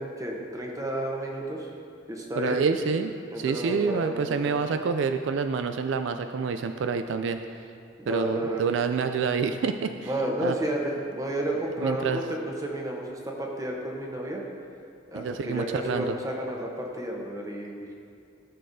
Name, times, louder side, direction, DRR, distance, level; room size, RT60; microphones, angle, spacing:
voice 1, 0.0-1.7 2.1-2.6 3.3-4.6 8.0-8.6 10.0-14.4 15.1-17.9, right 1 dB, 15° right, 0 dB, 0.9 m, -31 dB
voice 2, 2.4-7.6 8.1-10.1 10.4-10.6 11.8-12.2 15.1-16.2, right 5 dB, 70° right, 8 dB, 0.3 m, -27 dB
14.5 x 6.6 x 2.7 m, 2.4 s
head